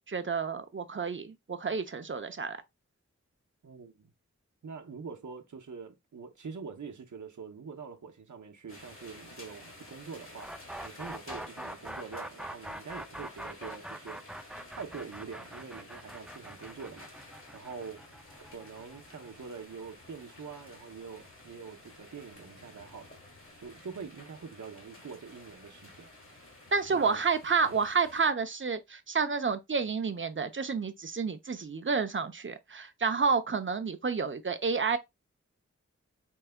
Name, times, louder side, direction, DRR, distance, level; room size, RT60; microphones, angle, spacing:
voice 1, 0.1-2.6 26.7-35.0, right 5 dB, 45° right, 0.6 m, -30 dB
voice 2, 3.6-4.1 4.6-14.2 14.7-18.0 18.4-23.2 23.6-26.1 26.9-27.2 27.7-27.8, right 5 dB, 85° right, 0.8 m, -45 dB
sound 1, 8.7-28.3, left 2 dB, 45° left, 1.5 m, -52 dB
sound 2, 10.4-20.2, right 1 dB, 5° right, 0.3 m, -43 dB
4.6 x 3.4 x 2.2 m
wide cardioid pair, 65°, 29 cm